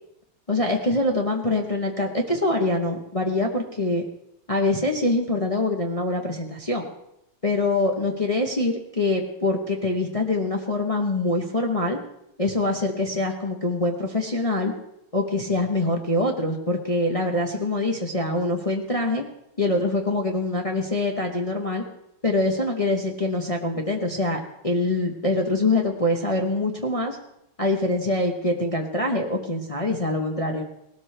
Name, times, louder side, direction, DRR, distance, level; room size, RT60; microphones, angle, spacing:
voice 1, 0.5-4.0 4.5-6.9 7.4-12.0 12.4-14.7 15.1-19.2 19.6-21.8 22.2-27.2 27.6-30.6, left 2 dB, 30° left, 1 dB, 0.6 m, -24 dB
18.5 x 12.5 x 3.4 m, 0.82 s
omnidirectional pair, 2.2 m